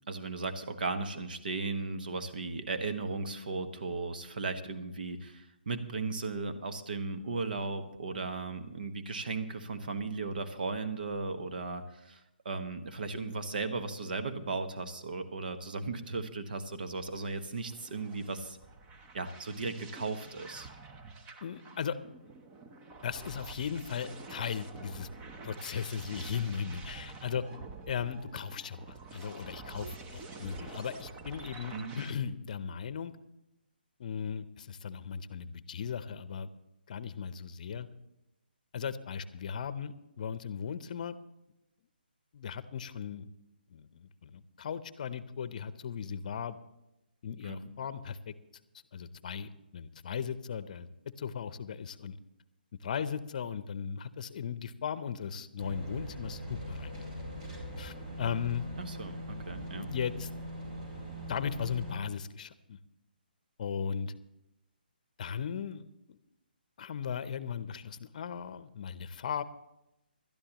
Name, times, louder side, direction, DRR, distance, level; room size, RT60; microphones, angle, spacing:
voice 1, 0.1-18.6 19.1-20.7 31.7-32.0 47.4-47.7 58.8-59.9, right 3 dB, 60° right, 8 dB, 1.3 m, -36 dB
sound 1, 16.9-32.1, right 3 dB, 20° right, 0.9 m, -48 dB
voice 2, 21.4-22.0 23.0-25.1 25.4-27.4 27.9-33.1 34.0-36.5 36.9-37.9 38.7-41.1 42.3-43.3 43.7-46.6 47.2-48.3 48.9-50.9 51.2-52.2 52.8-57.0 57.8-58.6 59.7-60.3 61.3-62.8 63.6-64.1 65.2-66.2 66.8-69.4, left 7 dB, 50° left, 15 dB, 0.7 m, -37 dB
sound 2, 55.6-62.0, equal, 45° right, 4.7 m, -41 dB
20.5 x 12.5 x 3.0 m, 0.92 s
figure-of-eight pair, 145°, 5 cm